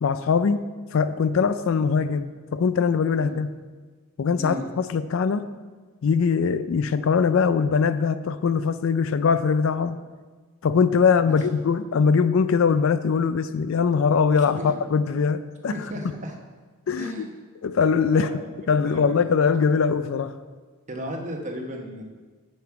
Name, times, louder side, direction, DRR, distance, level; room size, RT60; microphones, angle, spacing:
voice 1, 0.0-3.5 4.2-5.5 6.0-10.0 10.6-15.7 16.9-17.3 17.6-18.3 18.7-20.4, left 5 dB, 65° left, 13 dB, 0.4 m, -22 dB
voice 2, 15.7-16.3 16.9-17.3 18.1-18.5 18.8-19.2 20.9-22.0, equal, 35° right, 2 dB, 1.0 m, -34 dB
7.8 x 7.0 x 4.7 m, 1.4 s
head